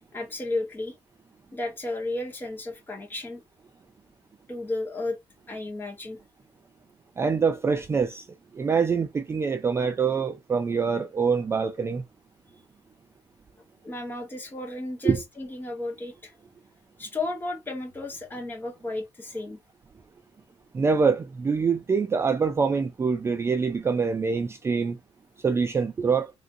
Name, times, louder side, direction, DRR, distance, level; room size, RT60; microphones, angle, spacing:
voice 1, 0.1-0.9 1.5-3.4 4.5-5.2 5.5-6.2 13.8-16.3 17.0-19.6, left 2 dB, 20° left, 1.2 m, -33 dB
voice 2, 7.2-8.3 8.5-12.0 15.0-15.2 20.7-25.0 25.4-26.3, right 5 dB, 25° right, 0.3 m, -25 dB
3.4 x 2.6 x 2.6 m
cardioid pair, 135°, 11 cm